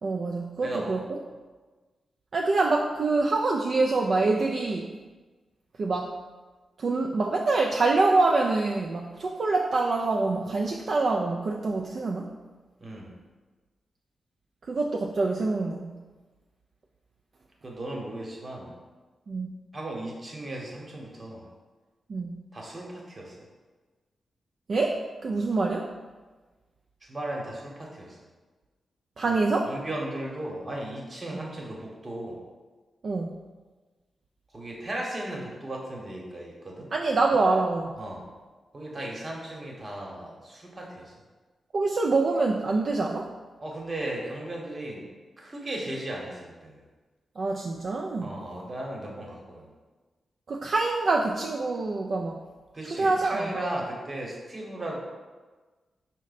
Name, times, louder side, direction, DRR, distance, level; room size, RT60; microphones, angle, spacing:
voice 1, 0.0-1.2 2.3-4.9 5.8-6.2 6.8-12.3 14.7-16.0 19.3-19.5 22.1-22.4 24.7-25.9 29.2-29.7 33.0-33.3 36.9-38.0 41.7-43.3 47.4-48.3 50.5-52.4 52.9-53.5, right 3 dB, 60° right, -1 dB, 0.3 m, -25 dB
voice 2, 0.6-1.0 12.8-13.1 17.6-18.8 19.7-21.4 22.5-23.4 27.0-28.2 29.2-32.4 34.5-36.9 38.0-38.3 38.7-41.1 43.6-45.1 45.4-46.8 48.2-49.7 52.7-55.0, right 1 dB, 40° right, -2 dB, 1.0 m, -36 dB
4.8 x 2.1 x 4.0 m, 1.3 s
cardioid pair, 55°, 0 cm